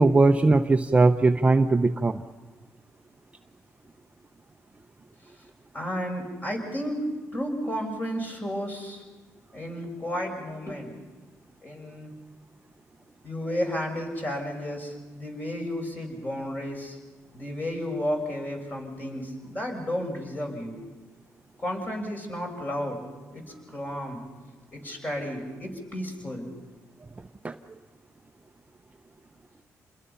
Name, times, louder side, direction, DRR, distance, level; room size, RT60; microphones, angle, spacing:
voice 1, 0.0-2.2 27.4-27.5, right 3 dB, 20° right, 7 dB, 0.7 m, -19 dB
voice 2, 5.7-7.1 7.3-9.0 9.5-10.9 11.6-12.1 13.2-17.0 17.3-20.8 21.6-23.0 23.3-23.4 23.7-24.2 24.7-26.5, equal, 30° left, 1 dB, 6.5 m, -32 dB
27.5 x 21.0 x 5.7 m, 1.3 s
cardioid pair, 85°, 6 cm